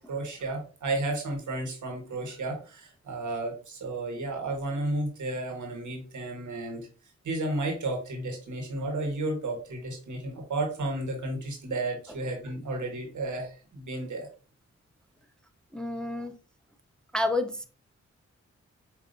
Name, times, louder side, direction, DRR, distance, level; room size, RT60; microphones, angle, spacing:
voice 1, 0.1-6.8 7.2-14.3, right 2 dB, 80° right, 1.3 m, -32 dB
voice 2, 15.7-16.3 17.1-17.6, left 2 dB, 5° left, 0.5 m, -29 dB
5.4 x 2.6 x 2.5 m
cardioid pair, 45°, 29 cm